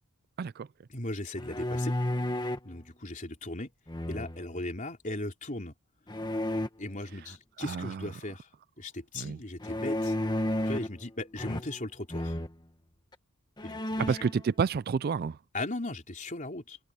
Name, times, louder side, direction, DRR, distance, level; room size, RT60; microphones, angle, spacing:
voice 1, 0.9-1.9 2.6-3.7 4.1-5.7 6.8-8.5 8.8-10.2 10.7-12.3 13.6-14.2 15.5-16.8, left 2 dB, 35° left, 3.9 m, -37 dB
sound 1, 1.4-2.7 3.9-4.6 6.1-6.7 9.6-11.0 11.4-11.9 12.1-12.5 13.1-13.2 13.6-14.3, left 1 dB, 20° left, 1.5 m, -32 dB
voice 2, 7.6-8.1 9.2-9.4 14.0-15.4, right 6 dB, 45° right, 0.3 m, -30 dB
head